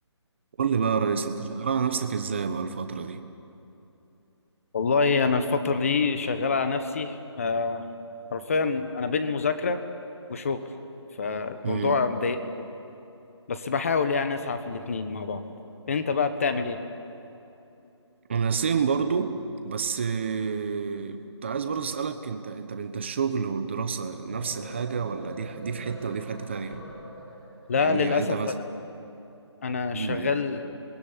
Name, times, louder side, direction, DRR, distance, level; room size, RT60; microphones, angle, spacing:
voice 1, 0.6-3.2 11.6-12.0 18.3-19.3 19.6-26.8 27.8-28.5 29.9-30.3, right 6 dB, 25° right, 8 dB, 1.1 m, -29 dB
voice 2, 4.7-7.8 8.3-9.8 10.3-10.6 11.2-12.4 13.5-15.5 15.9-16.8 27.7-28.5 29.6-30.7, left 4 dB, 30° left, 9 dB, 1.4 m, -26 dB
sound 1, 24.1-27.9, equal, 5° left, 6.9 m, -43 dB
27.5 x 21.0 x 9.9 m, 2.9 s
hypercardioid pair, 175°, 15 cm